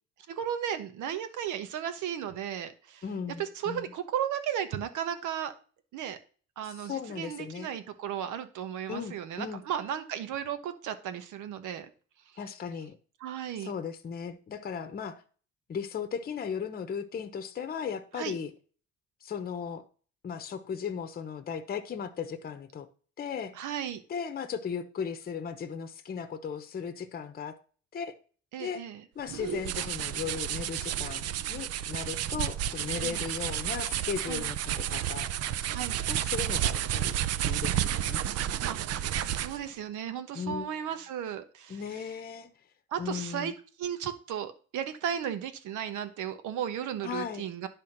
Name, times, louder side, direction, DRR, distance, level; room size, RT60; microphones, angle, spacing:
voice 1, 0.3-3.0 3.4-5.5 5.9-6.2 6.6-11.9 13.2-13.7 18.1-18.3 23.5-24.0 28.5-29.0 33.0-33.2 34.3-34.4 35.7-36.0 38.6-41.8 42.9-43.5 43.8-47.7, right 9 dB, 80° right, 10 dB, 1.2 m, -35 dB
voice 2, 3.0-3.9 6.6-7.7 8.9-9.6 12.4-13.0 13.6-15.2 15.7-18.5 19.2-19.8 20.2-22.9 23.2-23.5 24.1-27.6 27.9-28.1 28.6-28.8 29.1-35.3 36.1-37.1 37.5-38.2 40.3-40.7 41.7-42.5 43.0-43.5 47.0-47.4, left 7 dB, 30° left, 8 dB, 0.8 m, -36 dB
sound 1, 29.3-39.7, right 11 dB, 55° right, 0.5 m, -31 dB
10.5 x 3.6 x 5.9 m, 0.39 s
cardioid pair, 140°, 30 cm